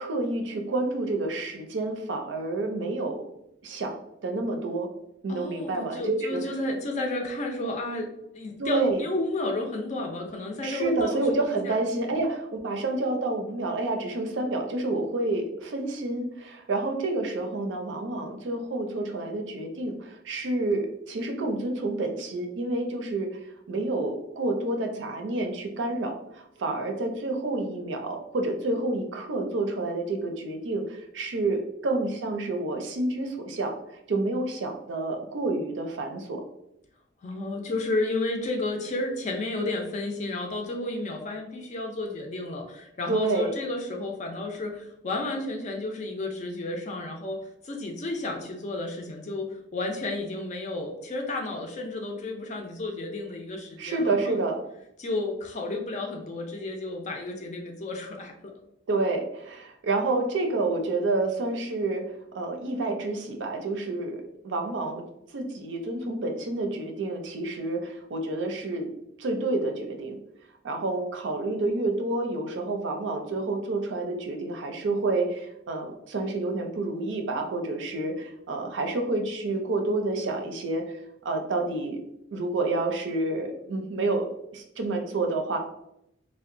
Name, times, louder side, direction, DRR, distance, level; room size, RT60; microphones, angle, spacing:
voice 1, 0.0-3.3 3.6-4.0 4.2-4.9 5.2-6.4 8.6-9.0 10.6-23.4 23.7-33.8 34.1-36.4 43.1-43.6 53.8-54.6 58.9-62.0 62.3-65.0 65.3-68.9 69.2-70.2 70.6-80.8 81.2-82.0 82.3-85.6, right 2 dB, 70° right, 4 dB, 0.5 m, -29 dB
voice 2, 5.3-11.7 37.2-47.4 47.6-49.5 49.7-54.4 55.0-58.3, left 2 dB, 40° left, 3 dB, 0.4 m, -32 dB
2.7 x 2.1 x 2.5 m, 0.80 s
head